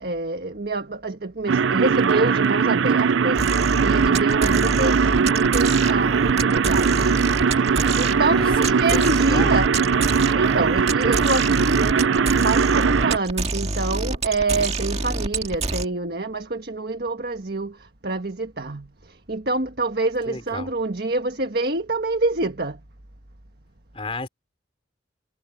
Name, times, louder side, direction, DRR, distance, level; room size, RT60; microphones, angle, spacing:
voice 1, 0.0-3.4 3.8-7.1 8.0-9.7 10.2-11.9 12.4-17.7 18.0-18.8 19.3-22.7, right 3 dB, 55° right, 1.6 m, -26 dB
sound 1, 1.5-13.2, right 6 dB, 75° right, 0.5 m, -20 dB
sound 2, 3.4-15.8, right 2 dB, 35° right, 1.8 m, -27 dB
voice 2, 20.3-20.7 23.9-24.3, left 2 dB, 30° left, 3.8 m, -31 dB
head